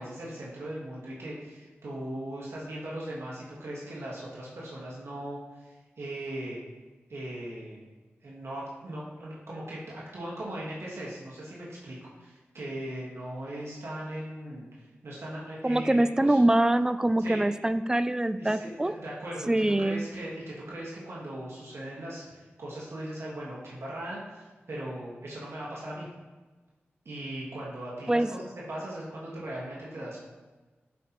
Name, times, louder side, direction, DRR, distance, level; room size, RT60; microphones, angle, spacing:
voice 1, 0.0-6.6 7.1-7.8 8.2-16.4 17.2-17.4 18.4-26.1 27.0-28.4 28.7-30.2, right 1 dB, 75° right, -6 dB, 1.5 m, -39 dB
voice 2, 15.6-18.9 19.5-20.0 28.1-28.3, right 1 dB, 15° right, 13 dB, 0.3 m, -24 dB
7.6 x 5.1 x 3.0 m, 1.3 s
cardioid pair, 55°, 4 cm